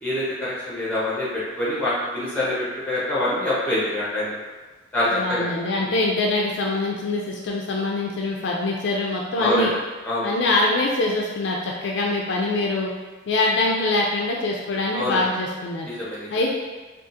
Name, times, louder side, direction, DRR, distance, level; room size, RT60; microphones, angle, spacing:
voice 1, 0.0-4.4 4.9-5.5 5.8-5.9 9.4-9.7 10.0-10.5 14.9-15.2 15.8-16.3, left 1 dB, 10° left, -9 dB, 1.0 m, -25 dB
voice 2, 5.1-9.7 10.2-12.9 13.3-15.9 16.3-16.6, left 2 dB, 65° left, -1 dB, 0.4 m, -24 dB
3.6 x 2.4 x 2.6 m, 1.3 s
head